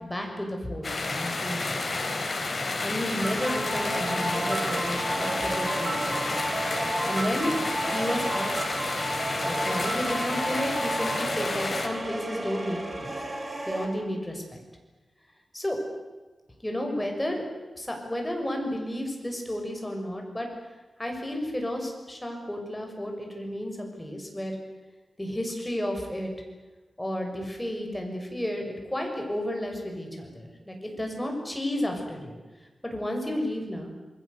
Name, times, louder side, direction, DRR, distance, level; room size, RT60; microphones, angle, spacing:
voice 1, 0.0-2.0 2.8-6.4 7.1-7.6 7.9-8.6 9.4-13.1 13.7-14.6 15.5-15.8 16.6-17.4 17.7-20.5 21.0-24.6 25.2-26.3 27.0-32.4 32.8-33.9, left 1 dB, 10° left, 2 dB, 6.3 m, -32 dB
sound 1, 0.8-11.9, left 3 dB, 45° left, 4.4 m, -31 dB
sound 2, 3.2-13.8, right 1 dB, 25° right, 5.0 m, -32 dB
28.0 x 21.0 x 8.2 m, 1.2 s
wide cardioid pair, 125°, 0 cm